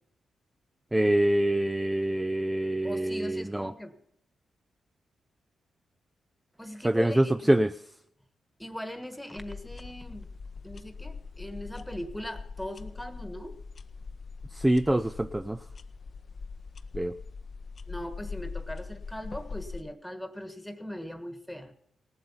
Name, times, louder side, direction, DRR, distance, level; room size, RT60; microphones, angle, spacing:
voice 1, 0.9-3.7 6.8-7.7 14.5-15.6 16.9-17.1, right 1 dB, 15° right, 11 dB, 0.4 m, -25 dB
voice 2, 2.8-4.0 6.6-7.5 8.6-10.3 10.6-13.6 17.9-21.7, equal, 5° left, 8 dB, 1.4 m, -40 dB
sound 1, 9.4-19.8, left 4 dB, 50° left, 0.6 m, -42 dB
18.0 x 7.8 x 5.6 m, 0.72 s
cardioid pair, 65°, 0 cm